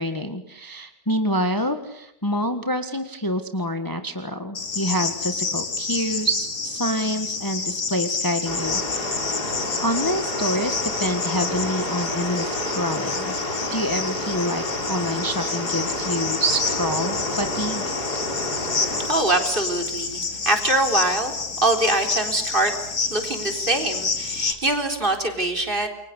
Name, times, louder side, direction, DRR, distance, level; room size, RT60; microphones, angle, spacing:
voice 1, 0.0-9.1 9.8-13.3 13.7-17.9, equal, 15° left, 7 dB, 1.5 m, -27 dB
Cricket, 4.5-24.5, left 4 dB, 65° left, 3.0 m, -29 dB
sound 1, 8.4-19.1, left 1 dB, 85° left, 6.6 m, -30 dB
voice 2, 18.6-22.7 23.0-25.9, right 2 dB, 30° right, 5 dB, 4.2 m, -24 dB
29.0 x 23.5 x 8.2 m, 0.77 s
omnidirectional pair, 1.7 m